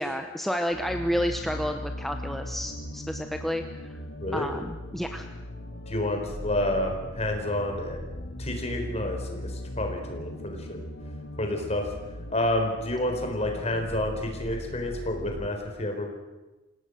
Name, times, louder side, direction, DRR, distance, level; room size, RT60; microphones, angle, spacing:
voice 1, 0.0-3.6 3.9-4.0 4.3-5.3, equal, ahead, 5 dB, 0.9 m, -30 dB
sound 1, 0.7-15.5, left 1 dB, 85° left, 2.1 m, -39 dB
voice 2, 5.9-8.0 8.4-9.5 9.8-10.8 11.4-11.9 12.3-16.1, left 1 dB, 35° left, 3 dB, 4.2 m, -29 dB
27.5 x 17.5 x 6.4 m, 1.1 s
head